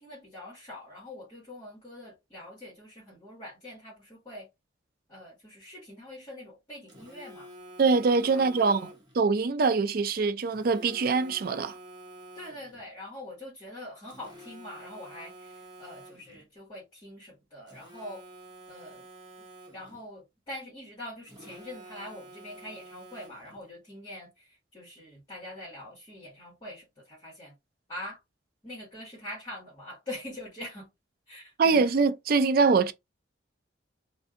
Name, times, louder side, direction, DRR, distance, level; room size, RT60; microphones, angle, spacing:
voice 1, 0.0-4.5 5.1-7.5 8.3-8.9 12.3-18.2 18.7-19.1 19.7-27.5 27.9-28.2 28.6-30.9 31.3-31.9, left 1 dB, 25° left, 1.7 m, -44 dB
Telephone, 6.9-9.2 10.5-12.9 14.1-16.4 17.7-20.0 21.3-23.6, right 1 dB, 25° right, 1.1 m, -49 dB
voice 2, 7.8-8.8 9.2-11.7 31.6-32.9, right 4 dB, 50° right, 0.4 m, -23 dB
3.3 x 2.6 x 2.5 m
head